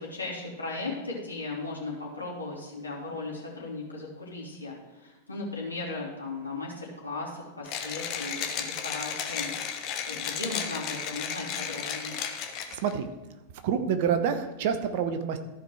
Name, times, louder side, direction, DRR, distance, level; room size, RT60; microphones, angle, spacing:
voice 1, 0.0-9.8 10.1-12.2, left 3 dB, 80° left, -4 dB, 3.0 m, -37 dB
Mechanisms, 7.7-12.9, left 8 dB, 40° left, 1.1 m, -34 dB
voice 2, 13.6-15.4, right 7 dB, 50° right, 8 dB, 1.0 m, -27 dB
14.0 x 5.0 x 4.7 m, 1.2 s
figure-of-eight pair, 90°, 0 cm